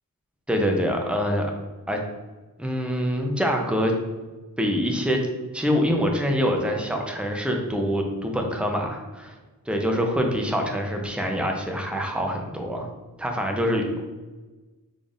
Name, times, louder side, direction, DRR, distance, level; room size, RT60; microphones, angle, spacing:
voice 1, 0.5-1.5 1.9-2.0 2.6-3.9 4.6-5.2 5.5-9.3 9.7-12.9 13.2-14.0, equal, 5° right, 2 dB, 0.6 m, -25 dB
3.9 x 3.4 x 2.5 m, 1.2 s
wide cardioid pair, 80°, 35 cm